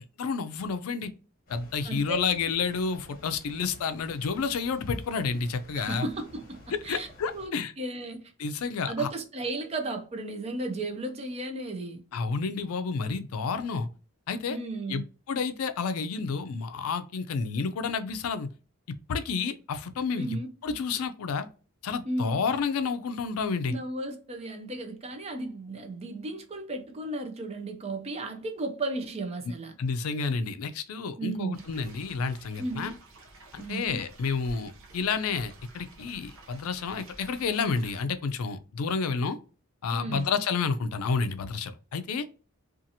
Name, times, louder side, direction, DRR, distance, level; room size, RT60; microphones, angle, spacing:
voice 1, 0.2-1.1 1.5-6.1 6.9-7.7 8.4-9.1 12.1-13.9 14.3-14.6 14.9-15.0 15.3-18.5 19.1-20.3 20.6-21.5 21.8-23.7 29.8-32.9 33.5-39.4 39.8-42.3, left 5 dB, 85° left, 0.4 m, -30 dB
sound 1, 1.5-7.5, left 1 dB, 40° left, 0.9 m, -52 dB
voice 2, 1.8-2.2 5.7-7.1 7.3-8.2 8.9-12.0 14.5-15.1 20.2-20.5 22.0-22.4 23.7-29.7 31.2-31.6 32.6-32.9 33.6-34.0 39.9-40.3, right 2 dB, 30° right, 0.4 m, -34 dB
sound 2, 31.5-38.0, right 2 dB, 70° right, 0.7 m, -51 dB
2.7 x 2.4 x 2.6 m
head